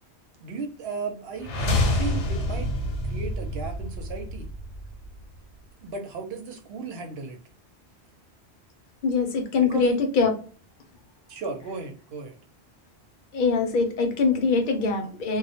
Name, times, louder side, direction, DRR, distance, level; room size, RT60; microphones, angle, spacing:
voice 1, 0.4-2.7 3.0-4.5 5.8-7.4 9.6-9.9 11.3-12.4, right 4 dB, 70° right, 4 dB, 0.9 m, -35 dB
sound 1, 1.4-5.4, left 1 dB, 85° left, 1.0 m, -28 dB
voice 2, 9.0-10.4 13.3-15.4, left 4 dB, 55° left, 4 dB, 0.7 m, -23 dB
2.2 x 2.0 x 2.7 m, 0.41 s
omnidirectional pair, 1.1 m